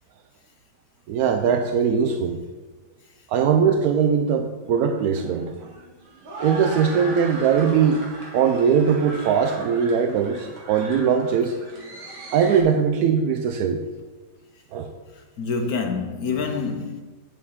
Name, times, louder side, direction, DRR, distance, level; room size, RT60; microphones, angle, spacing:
voice 1, 1.1-2.4 3.3-5.7 6.4-8.1 8.3-11.6 12.3-13.8 14.7-14.9, right 7 dB, 75° right, 0.9 m, -20 dB
sound 1, 4.6-12.6, right 2 dB, 90° right, 2.6 m, -38 dB
voice 2, 15.1-17.0, left 4 dB, 65° left, 1.0 m, -27 dB
8.7 x 8.5 x 3.7 m
omnidirectional pair, 2.1 m